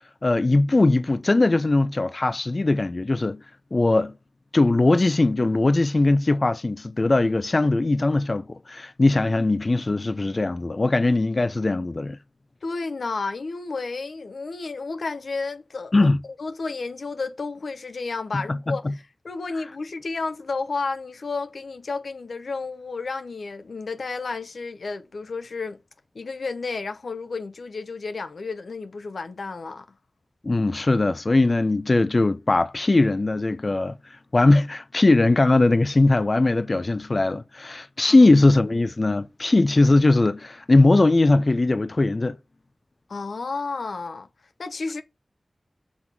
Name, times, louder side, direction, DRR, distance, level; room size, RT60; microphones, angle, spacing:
voice 1, 0.2-3.4 3.7-4.1 4.5-12.2 15.9-16.2 18.3-18.7 30.4-33.9 34.3-42.4, left 2 dB, 50° left, 0.6 m, -20 dB
voice 2, 12.6-16.1 16.4-25.8 26.1-29.9 38.2-38.3 43.1-44.3 44.6-45.0, left 4 dB, 85° left, 0.7 m, -32 dB
6.1 x 3.7 x 5.9 m
wide cardioid pair, 50°, 0 cm